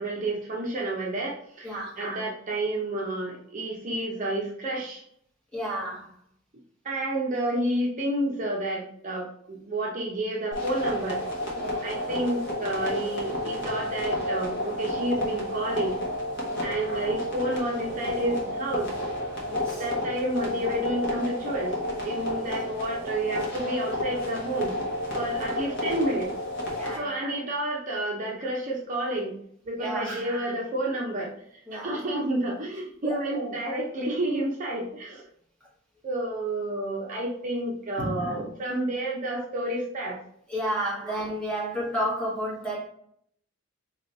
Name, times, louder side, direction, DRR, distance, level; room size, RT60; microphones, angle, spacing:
voice 1, 0.0-5.0 6.8-11.2 11.8-16.0 16.6-18.9 19.8-21.7 22.0-24.7 25.1-26.3 26.9-29.4 29.7-31.3 31.7-35.2 36.0-40.2, right 1 dB, 40° right, -2 dB, 0.7 m, -30 dB
voice 2, 1.6-2.0 5.5-6.1 11.5-11.9 16.5-16.9 19.4-19.8 25.1-25.3 26.7-27.2 29.8-30.2 31.7-31.9 33.0-33.2 38.0-38.2 40.5-42.8, equal, 5° left, -5 dB, 1.3 m, -32 dB
sound 1, 10.5-27.0, left 1 dB, 60° left, 1.2 m, -31 dB
3.1 x 3.0 x 3.9 m, 0.66 s
head